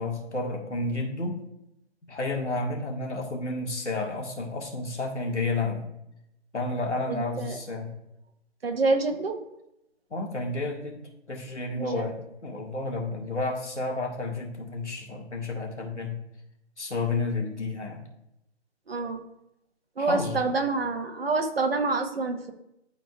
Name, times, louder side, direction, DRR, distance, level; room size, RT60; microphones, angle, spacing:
voice 1, 0.0-1.4 2.1-5.8 6.5-7.9 10.1-11.0 11.3-16.2 16.8-18.0 20.0-20.4, left 2 dB, 80° left, 1 dB, 1.9 m, -31 dB
voice 2, 7.1-7.6 8.6-9.4 11.8-12.1 18.9-19.2 20.0-22.5, right 3 dB, 55° right, 5 dB, 1.3 m, -27 dB
12.5 x 4.4 x 2.4 m, 0.83 s
figure-of-eight pair, 155°, 34 cm